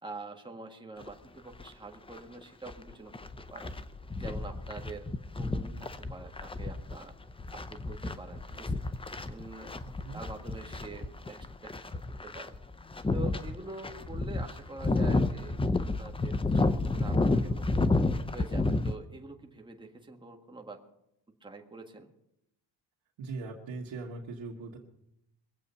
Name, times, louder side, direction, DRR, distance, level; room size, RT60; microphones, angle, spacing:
voice 1, 0.0-3.7 4.2-5.1 5.3-7.1 7.5-8.8 9.3-9.8 10.1-12.5 13.1-17.9 18.3-20.8 21.4-22.1, right 2 dB, 10° right, 2 dB, 1.7 m, -45 dB
sound 1, 1.0-1.1 1.6-1.7 2.1-19.0, left 2 dB, 10° left, 0.5 m, -31 dB
voice 2, 9.8-10.2 23.2-24.8, right 3 dB, 75° right, -3 dB, 2.0 m, -40 dB
23.0 x 8.1 x 5.6 m, 0.80 s
cardioid pair, 125°, 45 cm